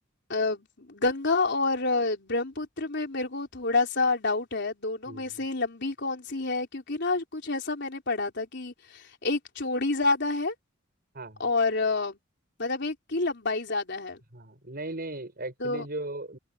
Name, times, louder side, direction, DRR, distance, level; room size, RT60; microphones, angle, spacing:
voice 1, 0.3-10.5 11.4-12.2 12.6-14.2 15.6-15.9, left 3 dB, 60° left, 3.9 m, -28 dB
voice 2, 11.1-11.4 14.3-16.4, right 2 dB, 50° right, 7.2 m, -37 dB
open air
head